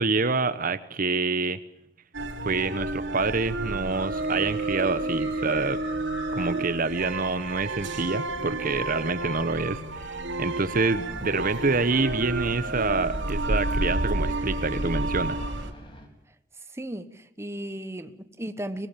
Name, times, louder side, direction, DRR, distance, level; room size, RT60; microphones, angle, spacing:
voice 1, 0.0-1.6 2.4-5.8 6.3-15.4, right 3 dB, 45° right, 1.0 m, -27 dB
sound 1, 2.1-15.7, right 2 dB, 65° right, 2.8 m, -30 dB
sound 2, 10.7-16.1, left 1 dB, 25° left, 4.0 m, -47 dB
voice 2, 16.7-18.9, right 1 dB, 15° right, 1.1 m, -35 dB
24.5 x 19.5 x 7.3 m
head